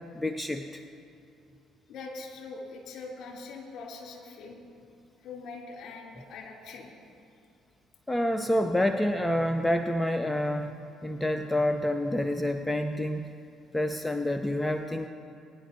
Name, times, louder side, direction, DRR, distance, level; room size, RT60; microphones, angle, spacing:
voice 1, 0.1-0.8 8.1-10.7 11.0-13.3 13.7-15.1, left 1 dB, 10° left, 7 dB, 0.6 m, -28 dB
voice 2, 1.9-4.6 5.2-6.9, left 3 dB, 55° left, -2 dB, 3.0 m, -42 dB
22.0 x 10.0 x 2.8 m, 2.6 s
hypercardioid pair, 50°, 0 cm